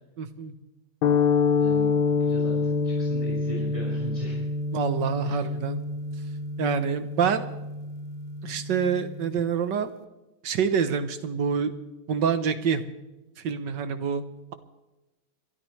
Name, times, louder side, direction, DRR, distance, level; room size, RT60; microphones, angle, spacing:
voice 1, 0.2-0.5 4.7-5.8 6.6-7.5 8.4-9.9 10.4-11.7 12.1-12.8 13.4-14.2, right 6 dB, 65° right, 10 dB, 1.4 m, -26 dB
sound 1, 1.0-9.4, left 4 dB, 80° left, 1.7 m, -27 dB
voice 2, 1.6-1.9 2.2-2.6 2.8-4.4 5.2-5.4, equal, 15° right, -7 dB, 5.8 m, -38 dB
28.0 x 13.0 x 3.2 m, 1.0 s
omnidirectional pair, 2.2 m